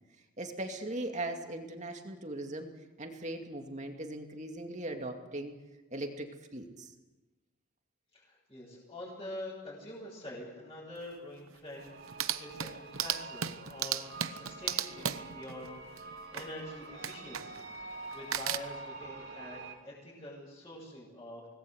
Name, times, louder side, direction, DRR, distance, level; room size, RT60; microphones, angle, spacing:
voice 1, 0.4-2.7 3.0-5.6 5.9-6.9, right 1 dB, 35° right, 4 dB, 2.5 m, -39 dB
voice 2, 8.1-21.5, left 1 dB, 20° left, -9 dB, 7.8 m, -46 dB
sound 1, 11.0-11.1 11.5-11.6 11.9-16.5 17.0-17.8 18.1-18.6, right 9 dB, 75° right, 1.0 m, -36 dB
sound 2, 11.7-19.7, right 3 dB, 50° right, 3.3 m, -46 dB
25.0 x 19.5 x 8.1 m, 1.2 s
head